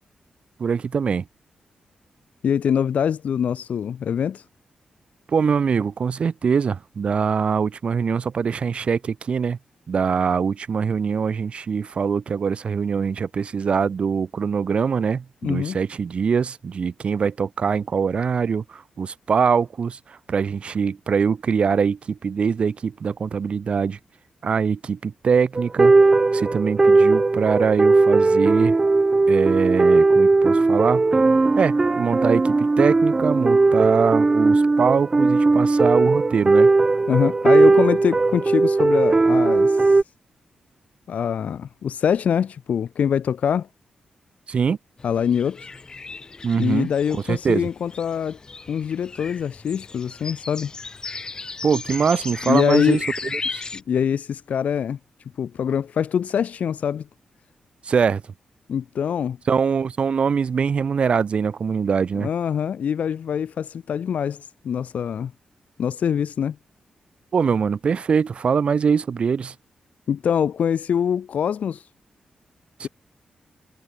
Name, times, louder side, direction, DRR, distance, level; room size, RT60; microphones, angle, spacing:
voice 1, 0.6-1.2 5.3-9.6 9.9-24.0 24.4-25.9 26.3-28.8 29.3-31.1 31.6-36.7 44.5-44.8 46.4-46.9 47.1-47.7 51.6-53.0 53.5-53.6 57.8-58.2 59.5-62.3 67.3-69.5 72.8-72.9, right 6 dB, 45° right, 4.2 m, -23 dB
voice 2, 2.4-4.4 15.4-15.8 37.1-40.0 41.1-43.7 45.0-45.7 46.6-48.4 48.7-50.7 52.4-53.0 53.7-55.0 55.4-57.1 58.7-59.4 62.1-65.3 65.8-66.6 70.1-71.9 72.8-72.9, left 8 dB, 70° left, 2.2 m, -24 dB
sound 1, 25.6-40.0, right 3 dB, 20° right, 1.5 m, -17 dB
sound 2, 45.0-53.8, left 4 dB, 30° left, 3.5 m, -36 dB
wide cardioid pair, 155°, 3 cm